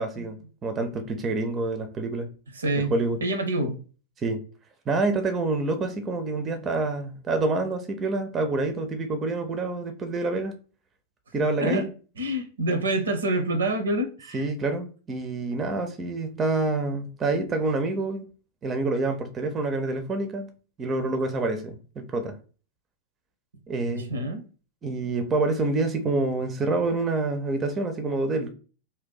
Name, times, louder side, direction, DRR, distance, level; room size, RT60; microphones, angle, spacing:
voice 1, 0.0-2.3 2.8-3.2 4.2-4.4 4.9-10.5 11.3-11.9 14.3-18.3 18.6-20.5 20.8-22.4 23.7-24.2 24.8-28.5, right 3 dB, 25° right, 0.5 m, -27 dB
voice 2, 2.6-2.9 3.2-3.8 11.6-11.8 12.2-14.4 23.9-24.4, right 1 dB, 70° right, 0.6 m, -26 dB
2.6 x 2.2 x 3.7 m
figure-of-eight pair, 90°, 0 cm